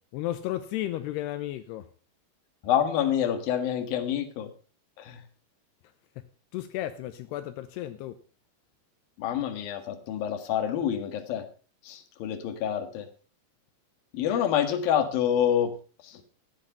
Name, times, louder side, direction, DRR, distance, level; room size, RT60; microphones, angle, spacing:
voice 1, 0.1-1.9 6.5-8.2, left 13 dB, 85° left, 2.9 m, -33 dB
voice 2, 2.6-4.5 5.0-5.2 9.2-11.4 11.8-13.1 14.1-15.7 16.0-16.2, left 9 dB, 65° left, 3.3 m, -27 dB
14.5 x 10.5 x 5.6 m
omnidirectional pair, 4.8 m